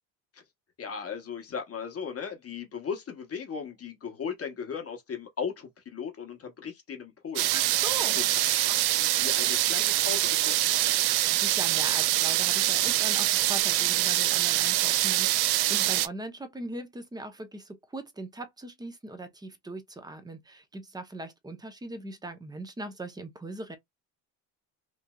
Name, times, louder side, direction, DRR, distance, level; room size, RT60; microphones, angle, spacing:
voice 1, 0.8-7.5 8.2-11.1, left 6 dB, 35° left, 1.0 m, -37 dB
sound 1, 7.4-16.1, right 15 dB, 65° right, 0.5 m, -25 dB
voice 2, 7.5-8.2 11.0-23.8, right 2 dB, 10° right, 0.7 m, -40 dB
3.0 x 2.6 x 2.3 m
supercardioid pair, 95°, 43 cm